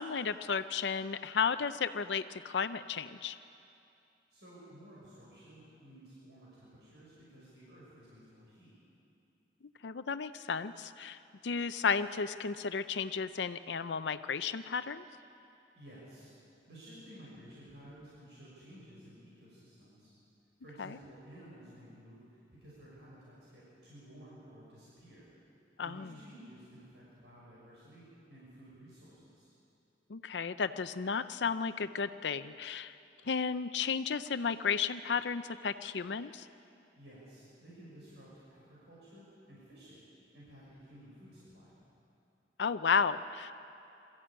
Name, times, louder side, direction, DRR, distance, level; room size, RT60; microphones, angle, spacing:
voice 1, 0.0-3.4 9.8-11.2 11.4-15.0 20.8-20.9 25.8-26.1 30.1-32.9 33.3-36.5 42.6-43.5, left 6 dB, 80° left, 12 dB, 0.6 m, -33 dB
voice 2, 4.3-8.7 15.7-16.3 16.7-20.1 20.6-25.3 25.8-29.5 36.9-40.0 40.3-41.8, equal, 75° right, -7 dB, 6.3 m, -54 dB
22.5 x 14.0 x 8.8 m, 2.7 s
head